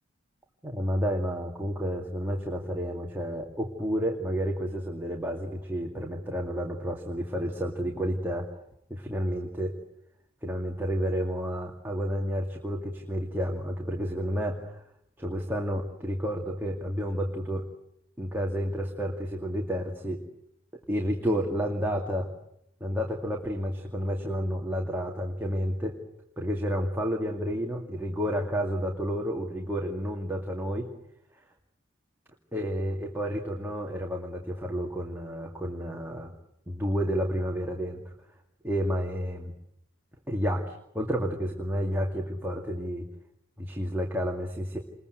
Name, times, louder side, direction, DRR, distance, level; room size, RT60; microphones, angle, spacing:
voice 1, 0.6-8.5 8.9-9.7 10.4-14.8 15.2-17.6 18.2-20.2 20.9-22.3 22.8-26.0 26.4-30.9 32.5-36.3 36.7-38.0 38.6-39.5 40.3-43.1 43.6-44.8, equal, 10° right, 0 dB, 2.4 m, -30 dB
28.5 x 22.0 x 8.1 m, 0.75 s
head